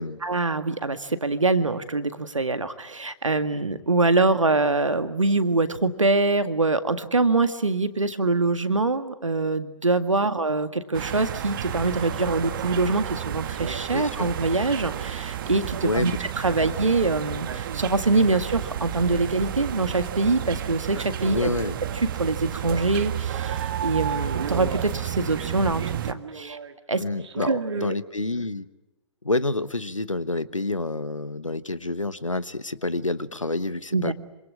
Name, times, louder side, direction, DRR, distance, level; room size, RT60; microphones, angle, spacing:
voice 1, 0.2-21.5 22.2-26.6 26.9-27.0 27.5-27.9 33.9-34.1, right 3 dB, 80° right, 10 dB, 1.9 m, -24 dB
sound 1, 10.9-26.1, right 10 dB, 45° right, 1.6 m, -31 dB
Male speech man speaking, 13.0-13.2 13.6-16.8 17.2-18.6 18.9-19.7 20.8-23.2 23.7-23.9 24.3-26.7 27.2-28.0 28.4-28.5, right 6 dB, 60° right, 2.2 m, -40 dB
voice 2, 13.9-14.3 15.8-16.2 16.5-16.9 21.3-21.8 27.0-28.7 29.2-34.1, left 2 dB, 90° left, 16 dB, 1.2 m, -28 dB
26.5 x 26.0 x 8.5 m, 1.0 s
figure-of-eight pair, 120°, 16 cm